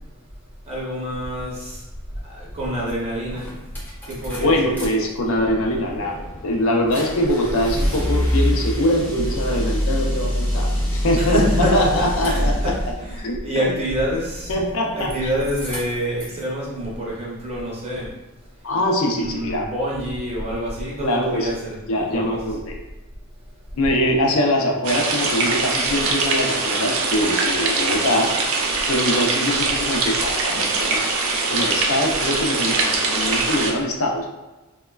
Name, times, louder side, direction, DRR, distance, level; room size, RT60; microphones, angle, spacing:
voice 1, 0.7-1.8 2.2-3.5 4.0-4.7 11.1-14.6 14.9-18.1 19.1-21.8 22.1-22.4, equal, 25° right, -6 dB, 0.7 m, -27 dB
sound 1, 2.9-3.0 3.3-4.9 5.2-13.0 14.4-15.1 15.4-16.4, equal, 10° left, 0.5 m, -25 dB
voice 2, 4.4-12.5 13.2-13.7 14.5-15.1 18.6-19.7 21.0-21.5 21.9-22.8 23.7-28.3 28.9-31.0 31.5-34.3, left 1 dB, 65° left, 1 dB, 0.4 m, -23 dB
sound 2, 24.8-33.7, right 3 dB, 65° right, 0.4 m, -22 dB
3.0 x 2.1 x 2.2 m, 1.1 s
head